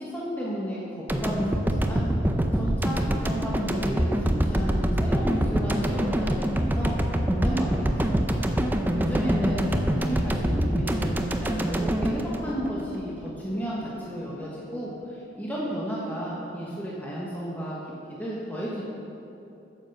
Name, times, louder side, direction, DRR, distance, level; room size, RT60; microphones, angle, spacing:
voice 1, 0.0-2.0 2.5-6.9 7.3-8.3 8.9-11.1 11.4-17.8 18.2-18.8, equal, 10° left, -6 dB, 1.3 m, -33 dB
sound 1, 1.1-13.3, right 1 dB, 10° right, 0.6 m, -25 dB
9.5 x 8.0 x 6.6 m, 2.8 s
head